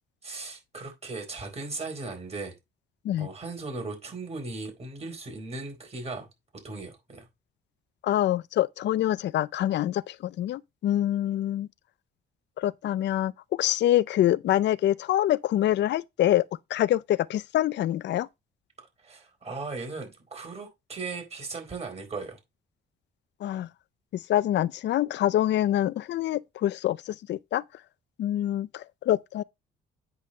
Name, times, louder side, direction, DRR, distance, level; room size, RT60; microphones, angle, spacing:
voice 1, 0.2-2.6 3.2-6.3 6.5-7.3 18.8-22.4, right 3 dB, 30° right, 4.1 m, -37 dB
voice 2, 8.0-11.7 12.6-13.3 13.6-16.4 16.7-18.3 23.4-23.7 24.1-27.6 28.2-29.4, left 12 dB, 65° left, 0.5 m, -25 dB
8.3 x 3.2 x 6.5 m
cardioid pair, 90°, 20 cm